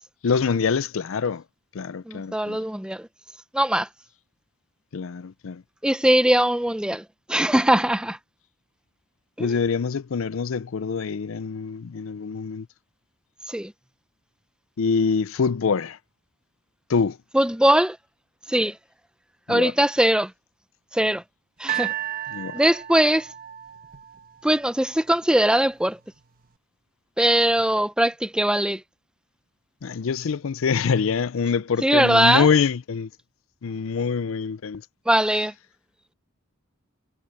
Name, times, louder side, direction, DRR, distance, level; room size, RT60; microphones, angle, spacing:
voice 1, 0.2-1.4 1.7-2.6 4.9-5.6 9.4-12.7 14.8-16.0 16.9-17.2 19.5-19.7 22.3-22.5 29.8-33.1 33.6-34.8, left 5 dB, 65° left, 0.5 m, -25 dB
voice 2, 2.1-3.1 3.5-3.9 5.8-7.0 7.3-8.2 9.4-9.5 13.5-13.7 17.3-18.0 18.5-18.8 19.5-20.3 20.9-21.2 21.6-21.9 22.5-23.3 24.4-26.0 27.2-28.8 31.8-32.5 35.1-35.5, right 1 dB, 5° right, 0.6 m, -20 dB
sound 1, 21.7-24.9 25.6-25.7, right 13 dB, 45° right, 1.4 m, -33 dB
head